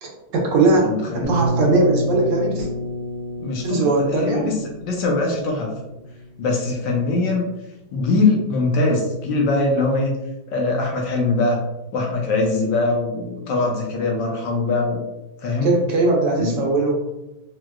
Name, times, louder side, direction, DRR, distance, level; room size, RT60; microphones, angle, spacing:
voice 1, 0.0-0.8 1.1-2.7 3.6-4.5 15.6-17.0, right 3 dB, 70° right, -1 dB, 1.2 m, -19 dB
voice 2, 0.8-1.4 3.4-3.9 4.1-4.5 4.8-5.7 6.4-7.4 7.9-10.2 10.5-11.6 11.9-15.0 15.4-15.7 16.4-16.6, left 3 dB, 75° left, 0 dB, 1.2 m, -22 dB
sound 1, 1.2-7.0, right 1 dB, 90° right, 0.7 m, -29 dB
4.5 x 2.1 x 2.3 m, 0.96 s
omnidirectional pair, 2.2 m